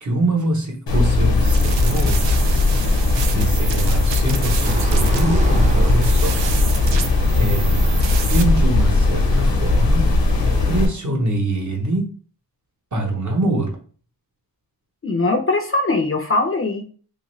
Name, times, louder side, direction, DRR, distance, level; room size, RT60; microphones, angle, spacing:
voice 1, 0.0-2.2 3.3-6.4 7.3-7.7 8.3-12.1 12.9-13.8, right 1 dB, 45° right, 1 dB, 0.8 m, -23 dB
sound 1, 0.9-10.9, left 2 dB, 85° left, 0.9 m, -18 dB
sound 2, 1.3-8.4, right 7 dB, 90° right, 0.5 m, -31 dB
sound 3, 4.6-10.8, right 1 dB, 20° right, 0.6 m, -28 dB
voice 2, 15.0-16.8, left 2 dB, 35° left, 4 dB, 0.4 m, -20 dB
3.0 x 2.5 x 3.1 m, 0.42 s
wide cardioid pair, 105°, 42 cm